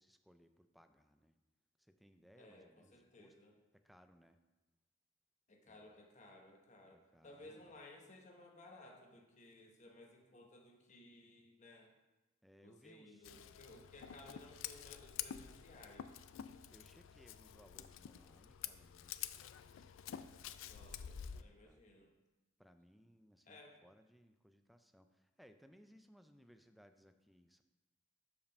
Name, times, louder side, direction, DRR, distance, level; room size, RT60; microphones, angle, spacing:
voice 1, 0.0-1.3 1.8-3.3 3.7-4.4 5.7-5.9 6.9-7.8 12.4-13.4 16.7-19.7 20.0-20.7 21.3-21.9 22.6-27.6, equal, ahead, 8 dB, 0.3 m, -66 dB
voice 2, 2.4-3.6 5.5-11.9 12.6-16.1 20.6-22.1 23.5-23.8, left 2 dB, 40° left, 1 dB, 1.0 m, -59 dB
Scissors, 13.2-21.4, left 10 dB, 80° left, 0.3 m, -49 dB
5.2 x 4.9 x 6.4 m, 1.1 s
head